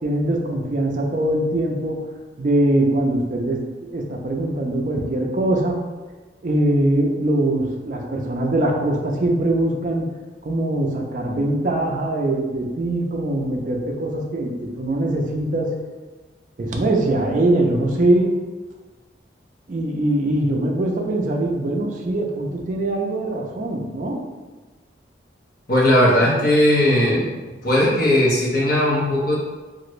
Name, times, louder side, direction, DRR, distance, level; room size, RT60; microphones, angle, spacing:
voice 1, 0.0-2.1 2.4-5.8 6.4-10.1 10.4-15.8 16.6-18.4 19.7-24.2, right 1 dB, 45° right, 1 dB, 0.4 m, -22 dB
voice 2, 25.7-27.3 27.6-29.3, left 1 dB, 50° left, -6 dB, 0.9 m, -17 dB
2.9 x 2.5 x 3.0 m, 1.3 s
head